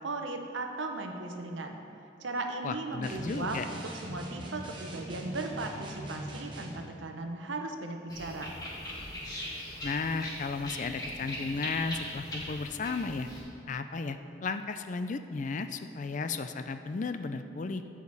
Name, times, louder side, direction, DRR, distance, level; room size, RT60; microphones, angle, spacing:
voice 1, 0.0-1.8 2.2-8.6, right 2 dB, 85° right, 4 dB, 0.8 m, -37 dB
voice 2, 2.6-3.6 9.8-13.3 13.7-17.8, left 4 dB, 40° left, 9 dB, 0.4 m, -34 dB
sound 1, 3.0-6.9, right 1 dB, 25° right, 1.1 m, -42 dB
sound 2, 8.1-13.4, left 1 dB, 20° left, 1.6 m, -40 dB
15.0 x 5.0 x 4.1 m, 2.6 s
head